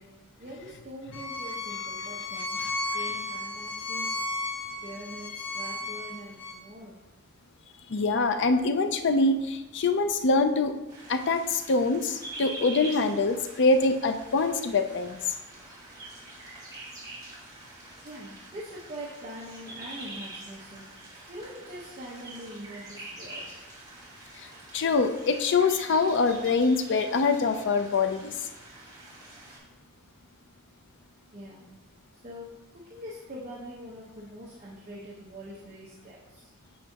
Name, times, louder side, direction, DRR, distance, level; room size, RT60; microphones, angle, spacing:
voice 1, 0.0-4.4 4.8-7.0 18.0-21.0 21.3-23.6 31.3-31.7 32.1-36.5, equal, 35° right, -6 dB, 1.1 m, -43 dB
Bowed string instrument, 1.1-6.5, left 2 dB, 90° left, 1.3 m, -34 dB
voice 2, 7.9-10.8 11.1-15.2 24.7-28.3, left 3 dB, 55° left, 8 dB, 0.5 m, -24 dB
sound 1, 10.9-29.6, right 2 dB, 20° right, 2.2 m, -45 dB
8.3 x 5.7 x 2.9 m, 1.0 s
head